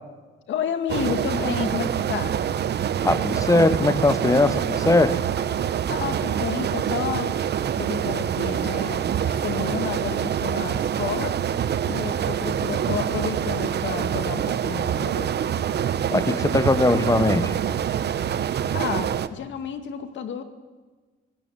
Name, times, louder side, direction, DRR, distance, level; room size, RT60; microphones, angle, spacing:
voice 1, 0.5-2.4 5.9-7.3 7.6-11.4 11.8-15.3 18.7-20.4, left 7 dB, 70° left, 2.1 m, -31 dB
sound 1, 0.9-19.3, right 9 dB, 55° right, 1.0 m, -25 dB
voice 2, 3.0-5.2 16.1-17.5, left 2 dB, 15° left, 1.3 m, -20 dB
22.0 x 16.5 x 9.2 m
cardioid pair, 90°, 20 cm